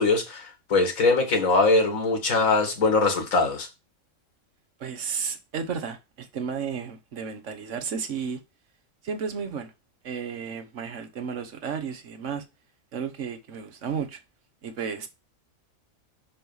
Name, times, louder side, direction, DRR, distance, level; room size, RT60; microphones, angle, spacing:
voice 1, 0.0-3.7, left 3 dB, 75° left, 2.1 m, -22 dB
voice 2, 4.8-8.4 9.0-9.7 10.0-12.4 12.9-14.2 14.6-15.1, right 6 dB, 60° right, 1.3 m, -33 dB
6.2 x 4.7 x 5.4 m
omnidirectional pair, 1.4 m